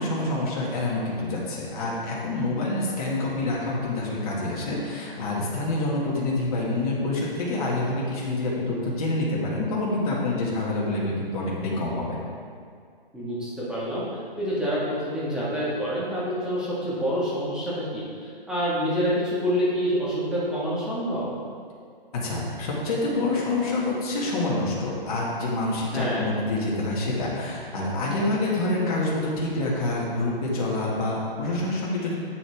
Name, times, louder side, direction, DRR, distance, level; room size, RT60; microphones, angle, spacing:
voice 1, 0.0-12.2 22.1-32.2, left 2 dB, 40° left, -5 dB, 2.2 m, -27 dB
voice 2, 13.1-14.1 14.4-18.1 18.5-21.2 25.9-26.3, equal, ahead, -10 dB, 1.8 m, -27 dB
11.0 x 6.8 x 3.6 m, 2.2 s
hypercardioid pair, 145°, 29 cm